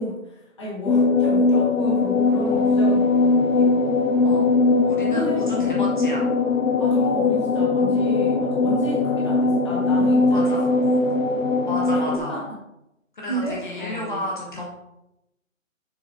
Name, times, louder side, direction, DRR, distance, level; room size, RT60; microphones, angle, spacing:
voice 1, 0.0-4.0 5.1-5.8 6.8-10.5 11.0-11.1 11.3-11.5 12.1-12.5 13.3-14.2, equal, 20° left, -5 dB, 1.3 m, -32 dB
sound 1, 0.9-12.2, left 3 dB, 75° left, 0.8 m, -20 dB
voice 2, 4.9-6.3 10.3-10.7 11.7-12.4 13.1-14.7, left 1 dB, 35° left, -3 dB, 1.2 m, -32 dB
7.0 x 6.6 x 2.6 m, 0.88 s
hypercardioid pair, 175°, 40 cm